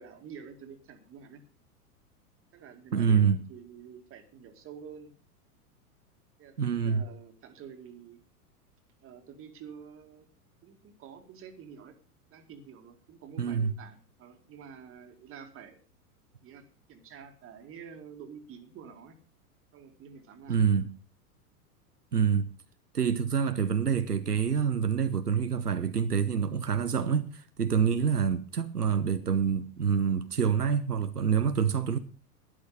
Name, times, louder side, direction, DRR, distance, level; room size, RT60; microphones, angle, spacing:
voice 1, 0.0-1.5 2.5-5.1 6.4-8.2 9.0-10.3 10.6-12.0 12.3-15.8 16.4-19.2 19.7-20.7, right 7 dB, 30° right, 2.2 m, -48 dB
voice 2, 2.9-3.4 6.6-7.0 13.4-13.7 20.5-20.9 22.1-22.5 22.9-32.0, right 7 dB, 85° right, 0.9 m, -26 dB
12.0 x 11.5 x 5.0 m
figure-of-eight pair, 90°, 45 cm